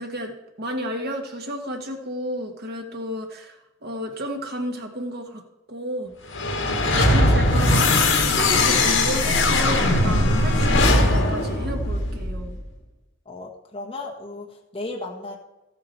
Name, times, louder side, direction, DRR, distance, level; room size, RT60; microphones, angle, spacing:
voice 1, 0.0-5.4 5.7-6.1 6.9-12.6, equal, 55° right, 3 dB, 1.7 m, -32 dB
sound 1, 6.3-12.6, left 2 dB, 75° left, 1.9 m, -20 dB
voice 2, 13.2-15.4, left 2 dB, 30° left, -1 dB, 1.4 m, -35 dB
14.0 x 8.6 x 4.6 m, 1.0 s
head